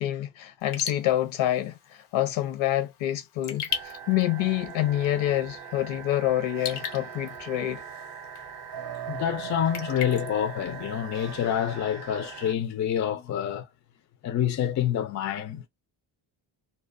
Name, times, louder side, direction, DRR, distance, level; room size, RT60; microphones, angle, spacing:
voice 1, 0.0-1.8 2.1-7.8, left 13 dB, 65° left, 0.8 m, -27 dB
Raindrop / Drip, 0.6-11.4, left 8 dB, 90° left, 1.0 m, -41 dB
sound 1, 3.7-12.5, right 8 dB, 45° right, 0.5 m, -40 dB
voice 2, 9.1-13.7 14.2-15.7, left 10 dB, 40° left, 0.4 m, -27 dB
2.3 x 2.1 x 2.5 m
cardioid pair, 145°, 49 cm